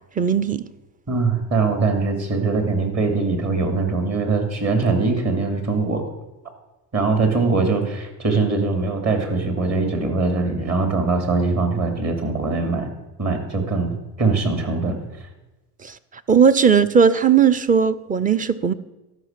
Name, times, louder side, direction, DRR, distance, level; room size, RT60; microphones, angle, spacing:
voice 1, 0.2-0.6 15.8-16.0 16.3-18.7, right 6 dB, 20° right, 0.6 m, -17 dB
voice 2, 1.1-6.0 6.9-12.9 13.2-15.3, right 3 dB, 35° right, 2.8 m, -22 dB
13.0 x 6.0 x 7.5 m
supercardioid pair, 90°, 45 cm